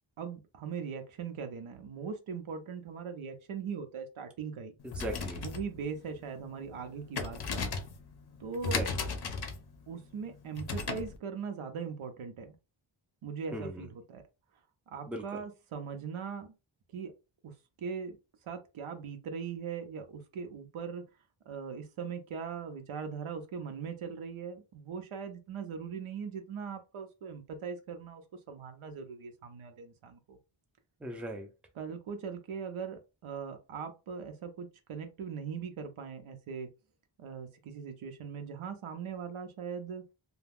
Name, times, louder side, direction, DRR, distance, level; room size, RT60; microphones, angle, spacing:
voice 1, 0.2-4.7 5.4-7.6 8.4-8.8 9.9-12.6 13.2-14.2 14.9-16.5 16.9-17.1 17.4-18.2 18.4-21.0 21.5-28.2 28.5-30.4 31.8-36.7 37.2-40.0, right 6 dB, 85° right, 0.7 m, -40 dB
sound 1, 4.8-11.2, left 4 dB, 55° left, 0.5 m, -37 dB
voice 2, 4.8-5.4 8.7-8.9 13.5-13.9 15.1-15.4 31.0-31.5, right 1 dB, 5° right, 0.4 m, -39 dB
2.3 x 2.2 x 3.4 m
wide cardioid pair, 120°, 48 cm